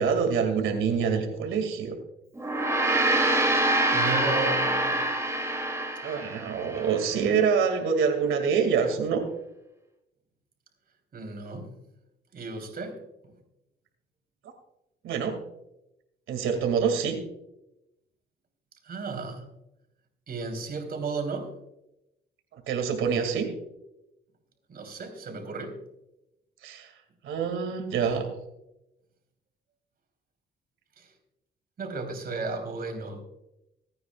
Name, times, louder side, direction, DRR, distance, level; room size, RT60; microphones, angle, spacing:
voice 1, 0.0-1.9 6.0-9.2 15.0-15.3 16.3-17.2 22.7-23.5 26.6-26.9 27.2-28.2, right 6 dB, 85° right, 6 dB, 2.3 m, -26 dB
Gong, 2.3-7.0, right 1 dB, 15° right, 2.6 m, -25 dB
voice 2, 3.9-5.1 11.1-11.7 12.3-13.0 18.9-19.4 20.3-21.5 24.7-25.8 31.0-31.1 31.8-33.2, right 3 dB, 50° right, 2 dB, 3.5 m, -34 dB
25.5 x 9.5 x 2.4 m, 0.89 s
cardioid pair, 90°, 20 cm